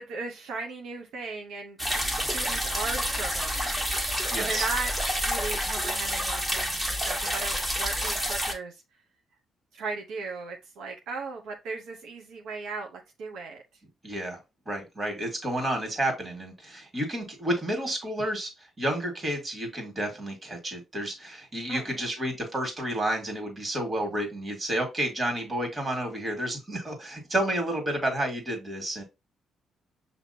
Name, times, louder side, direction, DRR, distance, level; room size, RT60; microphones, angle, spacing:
voice 1, 0.0-1.8 2.2-3.8 4.4-4.9 5.2-8.8 9.8-13.6 21.7-21.9, right 4 dB, 80° right, 0.8 m, -36 dB
sound 1, 1.8-8.5, equal, 10° right, 1.2 m, -29 dB
voice 2, 4.3-4.7 14.0-14.4 14.7-29.0, right 1 dB, 30° right, 2.0 m, -30 dB
6.0 x 2.8 x 2.8 m
cardioid pair, 90°, 0 cm